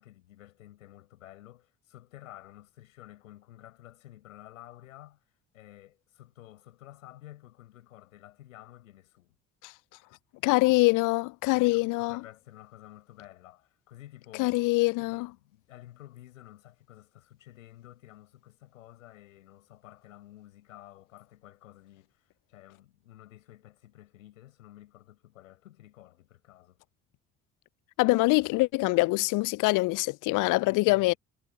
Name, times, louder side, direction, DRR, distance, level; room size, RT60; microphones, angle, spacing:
voice 1, 0.0-5.2 5.5-9.4 11.5-14.5 15.1-26.8 30.5-31.2, left 14 dB, 80° left, 5.7 m, -52 dB
voice 2, 10.4-12.2 14.4-15.3 28.0-31.1, left 23 dB, 55° left, 0.5 m, -24 dB
hypercardioid pair, 50°, 39 cm